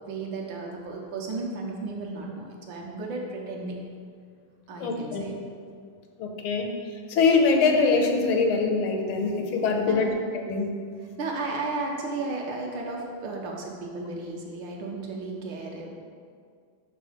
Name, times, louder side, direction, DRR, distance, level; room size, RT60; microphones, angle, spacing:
voice 1, 0.0-3.8 4.7-5.4 9.9-10.1 11.2-15.9, right 3 dB, 70° right, -1 dB, 1.5 m, -34 dB
voice 2, 4.8-5.3 6.2-6.7 7.1-10.1 10.4-10.7, left 4 dB, 85° left, 3 dB, 1.7 m, -23 dB
5.9 x 5.3 x 4.9 m, 2.1 s
omnidirectional pair, 2.3 m